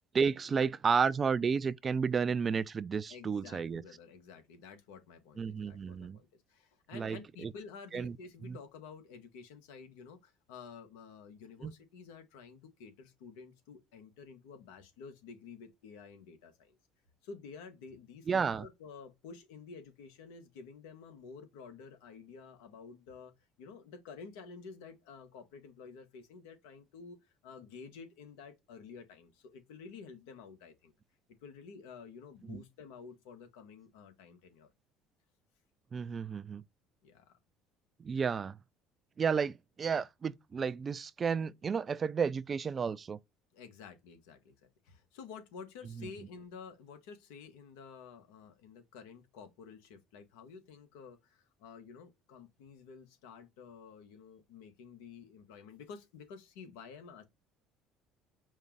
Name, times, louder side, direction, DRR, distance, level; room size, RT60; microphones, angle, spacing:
voice 1, 0.1-3.8 5.4-6.2 6.9-7.5 7.9-8.2 8.4-8.6 11.6-11.7 18.3-18.7 32.5-32.6 35.9-36.6 38.0-38.6 39.2-43.2 46.0-46.1, right 6 dB, 35° right, 0.4 m, -32 dB
voice 2, 3.1-16.8 17.2-23.3 23.6-30.9 31.4-34.7 37.0-37.3 43.5-44.5 44.8-57.2, left 5 dB, 85° left, 1.2 m, -51 dB
5.3 x 2.4 x 3.8 m
supercardioid pair, 80°, 0 cm